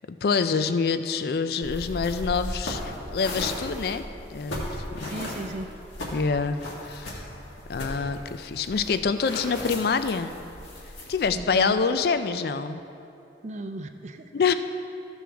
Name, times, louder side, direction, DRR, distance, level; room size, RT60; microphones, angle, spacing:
voice 1, 0.1-4.0 4.3-5.3 6.1-7.2 7.7-10.3 11.1-12.8 14.3-14.5, left 5 dB, 55° left, 10 dB, 0.4 m, -26 dB
sound 1, 1.6-11.4, left 1 dB, 80° left, 1.6 m, -36 dB
voice 2, 5.0-5.7 11.3-11.9 13.4-14.3, right 1 dB, 40° right, 7 dB, 0.4 m, -35 dB
14.5 x 6.2 x 3.4 m, 2.7 s
head